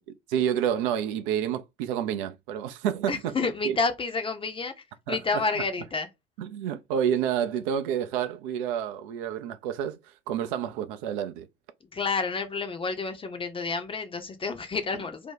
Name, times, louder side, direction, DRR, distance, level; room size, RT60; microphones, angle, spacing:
voice 1, 0.3-3.8 5.1-5.2 6.4-10.0 10.3-11.5, right 9 dB, 60° right, 0.5 m, -29 dB
voice 2, 3.1-4.7 5.1-6.1 11.9-15.3, left 4 dB, 20° left, 0.6 m, -29 dB
2.8 x 2.2 x 3.7 m
figure-of-eight pair, 70°, 30 cm